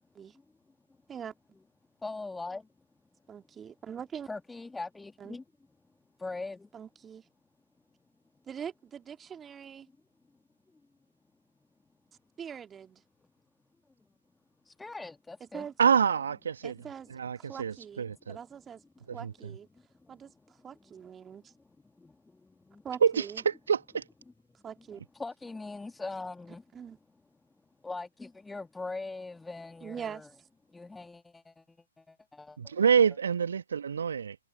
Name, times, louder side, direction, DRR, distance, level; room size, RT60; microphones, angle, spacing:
voice 1, 2.0-2.7 4.3-5.4 6.2-6.7 10.7-10.8 14.7-15.7 16.8-16.9 18.1-18.4 19.7-20.2 22.0-22.8 25.2-26.6 27.8-30.3 30.7-32.8, left 3 dB, 5° left, 1.7 m, -42 dB
voice 2, 3.3-4.3 5.2-5.4 6.7-7.2 8.5-9.9 12.4-13.0 15.4-15.7 16.6-17.1 17.4-18.8 19.1-19.7 20.1-21.4 22.8-23.4 24.6-25.0 26.7-27.0 29.8-30.3, right 7 dB, 15° right, 2.4 m, -43 dB
voice 3, 15.8-16.7 17.1-18.4 19.1-19.5 23.0-24.0 32.6-34.4, right 7 dB, 60° right, 1.6 m, -27 dB
figure-of-eight pair, 120°, 0 cm